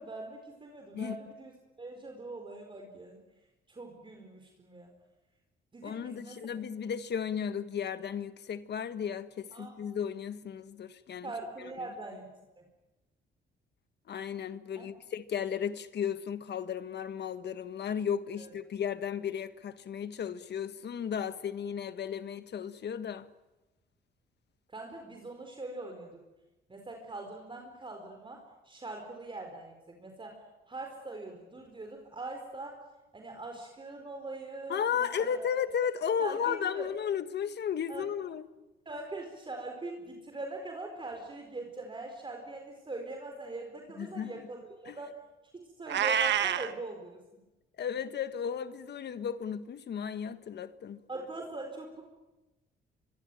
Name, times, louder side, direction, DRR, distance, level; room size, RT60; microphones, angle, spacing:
voice 1, 0.0-1.5 1.8-3.2 3.7-4.9 5.7-6.5 9.5-10.0 11.2-12.3 12.6-12.7 14.8-14.9 18.4-18.5 24.7-26.2 26.7-30.4 30.7-32.8 33.1-35.4 36.2-36.9 37.9-38.1 38.8-45.1 45.5-47.4 51.1-52.0, right 2 dB, 25° right, 4.6 m, -42 dB
voice 2, 5.8-11.3 14.1-23.3 34.7-38.5 44.0-44.4 44.8-45.0 47.8-51.0, left 8 dB, 60° left, 1.5 m, -34 dB
Meow, 45.9-46.7, right 8 dB, 65° right, 1.4 m, -27 dB
24.5 x 24.0 x 9.3 m
cardioid pair, 90°, 20 cm